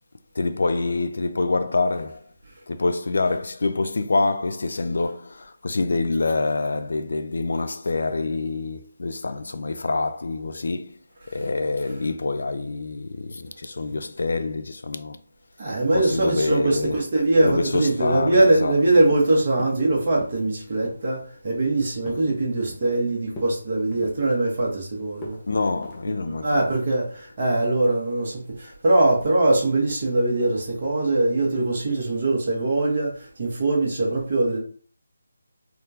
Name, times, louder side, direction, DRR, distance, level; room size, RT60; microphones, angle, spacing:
voice 1, 0.4-2.3 2.7-11.0 11.3-15.2 15.9-17.0 17.4-18.8 25.5-26.7, left 3 dB, 65° left, 0.3 m, -26 dB
voice 2, 15.6-25.4 26.3-34.6, right 2 dB, 40° right, 1.2 m, -22 dB
sound 1, 17.7-18.0 18.4-18.6 19.0-19.3 19.6-19.9 20.1-20.4 20.8-21.1 21.5-22.3 22.7-23.0 23.3-23.6 23.9-24.8 25.2-25.4 25.8-26.0 26.5-26.8, left 1 dB, 10° left, 0.5 m, -41 dB
3.6 x 2.3 x 2.8 m
figure-of-eight pair, 170°, 0 cm